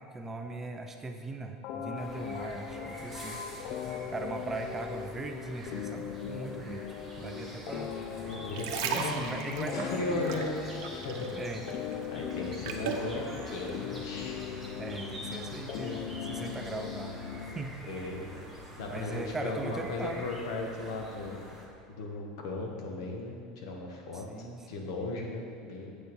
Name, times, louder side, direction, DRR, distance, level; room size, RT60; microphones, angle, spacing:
voice 1, 0.0-3.4 4.1-6.8 7.2-7.9 8.9-10.4 11.3-11.8 14.8-17.2 17.4-17.7 18.9-20.3 24.1-24.9, right 3 dB, 15° right, 4 dB, 0.6 m, -39 dB
sound 1, 1.6-17.6, left 8 dB, 55° left, 0.4 m, -40 dB
sound 2, 1.9-21.7, equal, 5° left, 1.5 m, -45 dB
voice 2, 8.3-9.2 9.5-10.5 10.9-11.3 12.1-14.4 17.9-18.2 18.8-21.4 21.9-26.0, left 2 dB, 90° left, 1 dB, 1.6 m, -36 dB
sound 3, 8.3-11.4 11.7-13.1 13.7-13.8, right 7 dB, 75° right, 0.9 m, -36 dB
8.2 x 6.6 x 5.4 m, 2.3 s
supercardioid pair, 150°, 2 cm